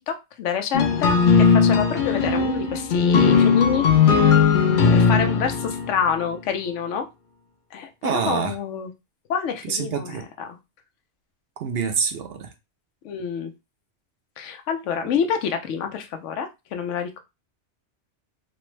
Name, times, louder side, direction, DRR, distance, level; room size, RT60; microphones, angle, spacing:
voice 1, 0.1-3.9 4.4-4.5 4.9-7.1 7.7-8.9 9.3-10.6 13.0-13.5 14.4-17.2, left 7 dB, 85° left, 0.9 m, -27 dB
sound 1, 0.7-6.2, left 6 dB, 55° left, 0.6 m, -18 dB
voice 2, 8.0-8.5 9.6-10.2 11.6-12.5, right 6 dB, 65° right, 0.7 m, -26 dB
3.2 x 2.0 x 3.1 m
omnidirectional pair, 1.2 m